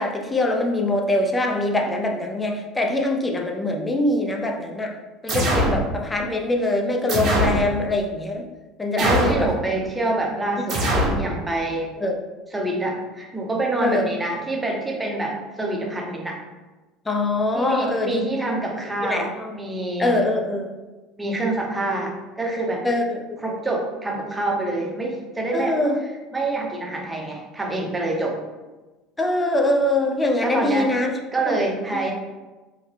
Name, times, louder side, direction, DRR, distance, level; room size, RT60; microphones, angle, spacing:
voice 1, 0.0-5.0 5.2-8.5 8.8-9.5 12.0-12.2 13.8-14.1 17.1-18.2 18.6-18.7 19.0-19.6 20.0-20.7 22.8-23.6 25.5-26.0 29.2-31.2 31.5-31.6, left 1 dB, 15° left, 2 dB, 0.5 m, -23 dB
sound 1, 5.3-5.8 7.1-7.6 9.0-9.5 10.7-11.2, right 1 dB, 50° right, 1.0 m, -21 dB
voice 2, 9.0-10.9 11.2-11.9 12.5-16.4 17.5-19.3 19.6-20.2 21.2-22.9 23.4-25.8 26.3-28.4 30.4-30.9 31.3-32.1, right 2 dB, 15° right, 0 dB, 0.8 m, -26 dB
3.7 x 2.1 x 3.3 m, 1.2 s
supercardioid pair, 90°, 0 cm